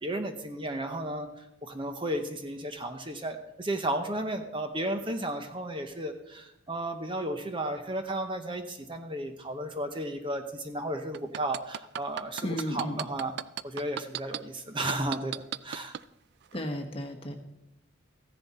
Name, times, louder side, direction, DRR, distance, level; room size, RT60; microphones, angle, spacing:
voice 1, 0.0-13.3 13.6-15.9, right 1 dB, 25° right, 6 dB, 0.8 m, -34 dB
sound 1, 11.1-14.4 14.9-16.0 16.5-16.6, right 9 dB, 55° right, 0.3 m, -34 dB
voice 2, 12.4-13.0 16.5-17.3, equal, 30° left, 4 dB, 1.3 m, -33 dB
15.0 x 10.5 x 4.2 m, 0.87 s
head